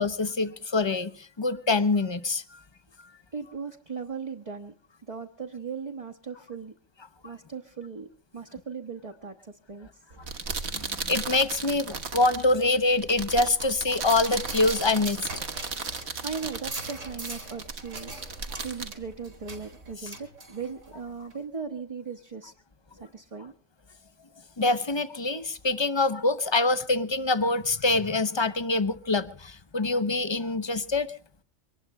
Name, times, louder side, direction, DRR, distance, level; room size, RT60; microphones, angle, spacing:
voice 1, 0.0-2.6 10.7-15.2 18.5-18.6 24.6-31.1, left 3 dB, 25° left, 12 dB, 0.7 m, -25 dB
voice 2, 3.3-4.7 5.0-6.7 7.2-8.1 8.3-9.9 15.8-18.1 18.5-22.5 23.0-23.5, right 5 dB, 30° right, 2 dB, 1.1 m, -38 dB
sound 1, 10.1-19.9, right 5 dB, 60° right, 1.5 m, -36 dB
sound 2, 14.0-20.9 21.3-21.4, right 2 dB, 80° right, 4.3 m, -41 dB
23.5 x 19.0 x 3.2 m, 0.43 s
omnidirectional pair, 1.3 m